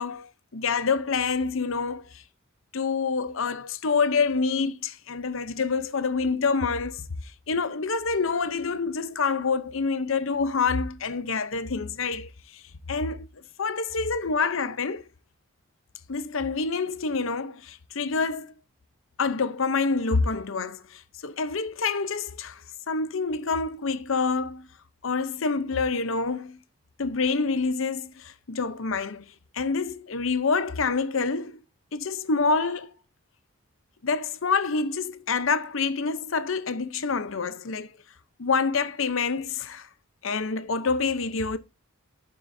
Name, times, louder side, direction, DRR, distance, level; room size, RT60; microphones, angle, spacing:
voice 1, 0.0-2.2 2.7-7.1 7.5-12.6 12.9-13.3 13.6-15.0 16.1-18.5 19.2-22.6 22.9-24.7 25.0-26.6 27.0-29.3 29.5-31.6 31.9-32.9 34.0-37.9 38.4-39.9 40.2-41.6, left 4 dB, 70° left, 0.7 m, -27 dB
12.0 x 7.6 x 2.7 m
head